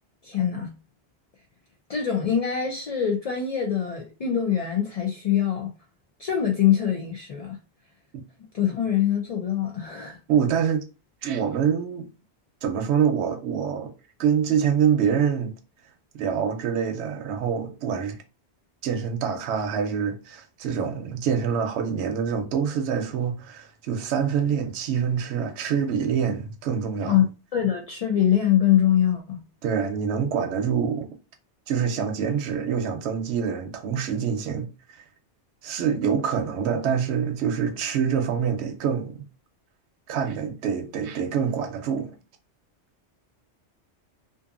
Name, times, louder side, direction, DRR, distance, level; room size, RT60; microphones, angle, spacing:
voice 1, 0.2-0.7 1.9-5.7 6.2-7.6 8.5-10.2 27.1-27.2 27.5-29.4, left 10 dB, 65° left, 0.3 m, -23 dB
voice 2, 10.3-10.8 11.2-12.1 12.6-13.9 14.2-15.5 16.1-18.2 18.8-27.2 29.6-31.1 31.7-35.0 35.6-39.3 40.1-42.1, right 7 dB, 75° right, 0.8 m, -25 dB
2.6 x 2.5 x 2.4 m
omnidirectional pair, 1.2 m